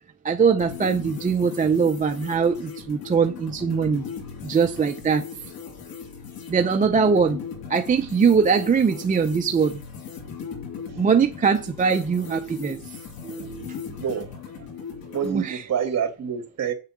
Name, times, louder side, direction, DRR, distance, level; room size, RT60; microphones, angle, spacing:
voice 1, 0.2-4.0 4.4-5.2 6.5-7.4 7.7-9.8 11.0-12.8 13.2-13.8 15.2-15.6, right 6 dB, 25° right, 0.5 m, -22 dB
sound 1, 0.6-15.4, left 6 dB, 90° left, 3.0 m, -38 dB
voice 2, 13.8-14.3 14.6-14.7 15.1-16.7, right 8 dB, 50° right, 2.6 m, -27 dB
8.2 x 6.8 x 7.4 m
cardioid pair, 155°, 35 cm